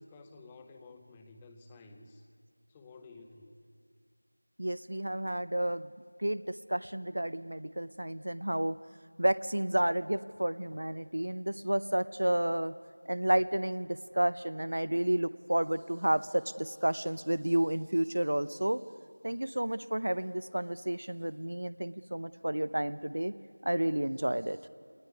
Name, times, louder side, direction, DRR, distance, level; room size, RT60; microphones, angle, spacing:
voice 1, 0.0-2.2 2.7-3.6, left 3 dB, 5° left, 6 dB, 0.6 m, -52 dB
voice 2, 4.6-5.9 6.2-8.8 9.2-12.8 13.1-18.8 19.2-23.3 23.6-24.6, right 1 dB, 55° right, 16 dB, 0.6 m, -31 dB
22.0 x 19.5 x 9.6 m, 2.1 s
figure-of-eight pair, 175°, 0 cm